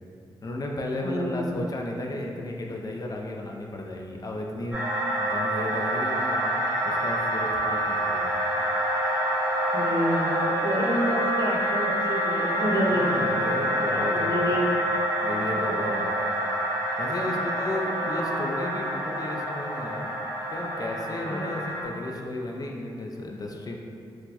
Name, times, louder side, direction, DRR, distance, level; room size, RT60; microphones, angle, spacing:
voice 1, 0.4-4.8 5.2-8.4 12.9-14.6 15.2-16.2 17.0-20.1 20.5-23.8, left 1 dB, 40° left, 0 dB, 0.4 m, -34 dB
voice 2, 1.0-1.7 5.4-5.5 9.7-13.5 13.9-14.7 18.0-18.5 21.3-21.5, right 1 dB, 45° right, -3 dB, 0.7 m, -29 dB
sound 1, 4.7-21.8, equal, 20° right, 1.4 m, -27 dB
4.0 x 2.1 x 2.8 m, 2.6 s
cardioid pair, 60°, 10 cm